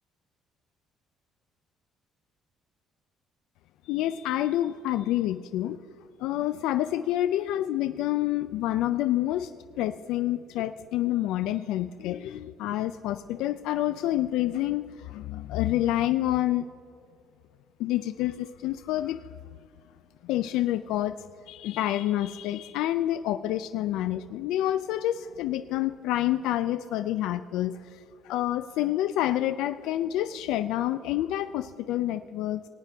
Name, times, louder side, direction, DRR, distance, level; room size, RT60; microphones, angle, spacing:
voice 1, 3.8-5.8 6.2-9.5 9.8-16.7 17.8-19.3 20.2-32.6, left 13 dB, 90° left, 10 dB, 0.3 m, -28 dB
19.5 x 9.1 x 3.4 m, 2.5 s
cardioid pair, 150°, 0 cm